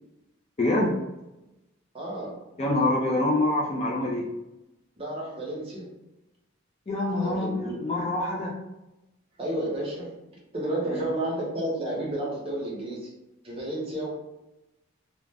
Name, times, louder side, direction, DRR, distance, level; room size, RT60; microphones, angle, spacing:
voice 1, 0.6-1.0 2.6-4.3 6.9-8.6 10.9-11.1, left 2 dB, 30° left, -2 dB, 0.4 m, -26 dB
voice 2, 1.9-2.4 5.0-5.9 7.2-7.8 9.4-13.1 13.4-14.1, right 1 dB, 25° right, -5 dB, 0.8 m, -31 dB
2.4 x 2.1 x 3.3 m, 0.98 s
head